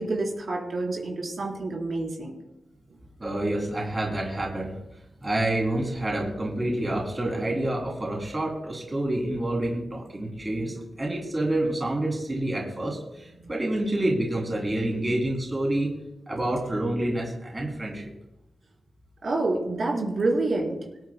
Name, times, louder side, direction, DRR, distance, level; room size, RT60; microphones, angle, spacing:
voice 1, 0.0-2.3 19.2-20.8, right 2 dB, 60° right, -2 dB, 3.8 m, -27 dB
voice 2, 3.2-4.7 5.2-15.9 16.3-18.1, right 1 dB, 25° right, -2 dB, 3.0 m, -28 dB
24.5 x 9.3 x 2.2 m, 0.91 s
wide cardioid pair, 90°, 0 cm